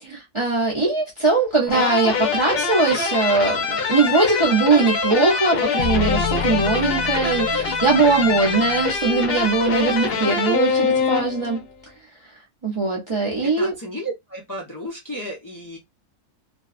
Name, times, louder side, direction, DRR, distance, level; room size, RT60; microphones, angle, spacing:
voice 1, 0.0-3.6 3.9-11.6 12.6-13.7, right 3 dB, 30° right, 0.6 m, -20 dB
sound 1, 1.7-11.6, left 5 dB, 55° left, 0.8 m, -24 dB
sound 2, 5.8-10.0, left 6 dB, 85° left, 0.4 m, -30 dB
voice 2, 13.4-15.8, equal, 20° left, 0.5 m, -33 dB
2.6 x 2.2 x 2.3 m
omnidirectional pair, 1.3 m